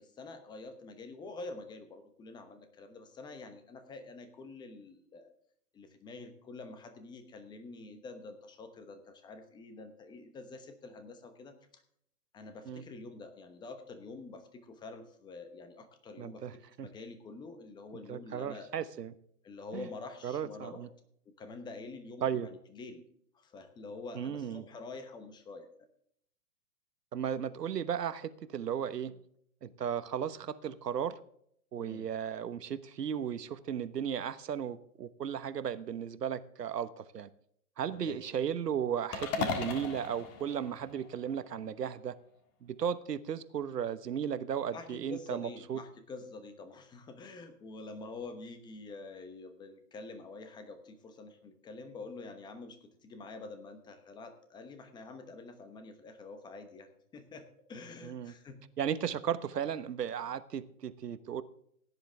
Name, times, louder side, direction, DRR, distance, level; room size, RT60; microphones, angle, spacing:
voice 1, 0.0-5.3 5.7-11.8 12.3-18.7 19.4-20.8 21.4-23.0 23.3-25.7 31.8-32.1 37.9-38.2 44.7-58.6, left 3 dB, 10° left, 8 dB, 1.0 m, -47 dB
voice 2, 16.2-16.9 18.1-19.1 19.7-19.8 20.2-20.9 22.2-22.5 24.1-24.6 27.1-29.1 29.6-31.2 31.7-37.3 37.8-42.1 42.6-45.8 58.0-58.3 58.8-61.4, right 8 dB, 80° right, 13 dB, 1.2 m, -35 dB
sound 1, 39.1-41.5, left 5 dB, 25° left, 1.8 m, -37 dB
16.5 x 10.5 x 3.5 m, 0.67 s
hypercardioid pair, 145°, 47 cm